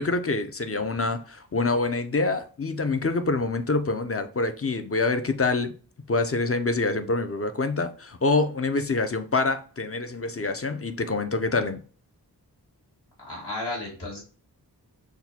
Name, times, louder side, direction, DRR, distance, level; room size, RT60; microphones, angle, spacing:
voice 1, 0.0-5.7 6.1-11.8, left 3 dB, 35° left, 0.5 m, -26 dB
voice 2, 13.2-14.2, left 2 dB, 70° left, 2.0 m, -33 dB
5.9 x 2.2 x 2.8 m
wide cardioid pair, 45°, 41 cm